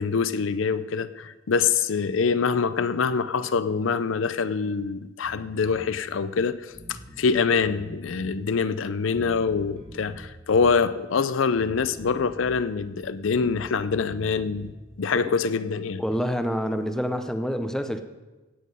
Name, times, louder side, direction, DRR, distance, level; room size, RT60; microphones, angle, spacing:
voice 1, 0.0-6.6 6.9-14.7 15.0-16.0, left 5 dB, 80° left, 0.5 m, -25 dB
Bass guitar, 5.2-5.9 6.4-6.5 6.7-8.4 9.1-10.8 11.5-12.7 12.9-14.8, equal, 25° right, 2.1 m, -45 dB
voice 2, 16.0-18.0, equal, 5° left, 0.6 m, -27 dB
17.0 x 7.6 x 5.4 m
head